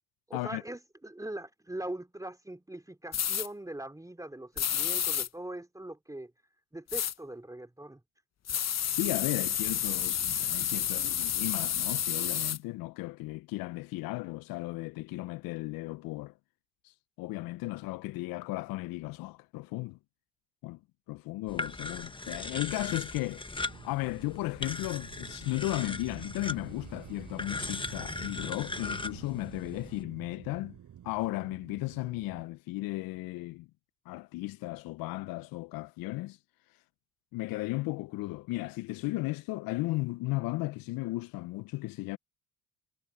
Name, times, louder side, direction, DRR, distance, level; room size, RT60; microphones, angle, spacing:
voice 1, 0.3-6.3 6.7-8.0, right 1 dB, 10° right, 3.1 m, -41 dB
sound 1, 3.1-3.5 4.6-5.3 6.9-7.1 8.5-12.6, left 9 dB, 45° left, 1.4 m, -30 dB
voice 2, 8.9-16.3 16.8-20.0 20.6-20.8 21.1-30.8 31.0-33.7 34.0-36.4 37.3-42.2, left 20 dB, 65° left, 0.9 m, -35 dB
sound 2, 21.5-30.0, left 3 dB, 15° left, 1.5 m, -39 dB
sound 3, 23.5-32.5, right 10 dB, 55° right, 7.9 m, -49 dB
hypercardioid pair, 55°, 37 cm